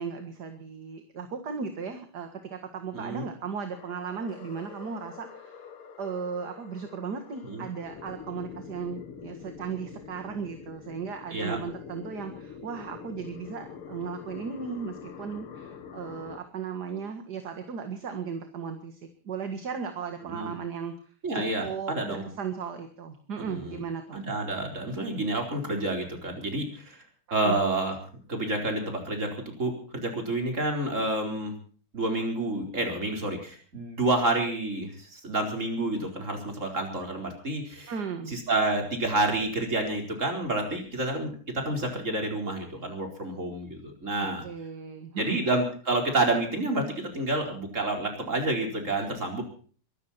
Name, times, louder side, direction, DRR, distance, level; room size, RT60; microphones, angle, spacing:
voice 1, 0.0-5.7 6.0-20.9 21.3-24.2 27.4-27.5 37.9-38.4 44.2-45.4, right 6 dB, 50° right, 6 dB, 2.2 m, -36 dB
voice 2, 2.9-3.3 7.4-7.6 11.3-11.6 20.2-20.5 21.2-22.2 23.4-23.8 24.1-27.0 27.3-28.0 28.3-31.5 31.9-37.9 38.3-44.4 45.2-49.4, right 2 dB, 35° right, 2 dB, 4.8 m, -29 dB
sound 1, 3.7-16.4, left 7 dB, 80° left, 2.5 m, -45 dB
23.5 x 13.5 x 4.4 m, 0.43 s
omnidirectional pair, 2.4 m